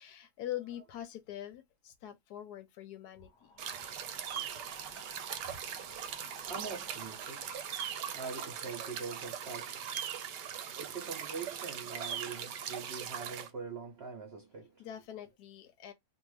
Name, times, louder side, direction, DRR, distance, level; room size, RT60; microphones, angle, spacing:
voice 1, 0.0-3.5 5.4-5.6 14.8-15.9, left 12 dB, 75° left, 1.1 m, -44 dB
sound 1, 3.1-11.3, left 4 dB, 20° left, 1.0 m, -59 dB
sound 2, 3.6-13.5, right 8 dB, 80° right, 1.2 m, -40 dB
voice 2, 5.7-14.9, right 5 dB, 50° right, 0.8 m, -44 dB
2.7 x 2.4 x 3.1 m
omnidirectional pair, 1.8 m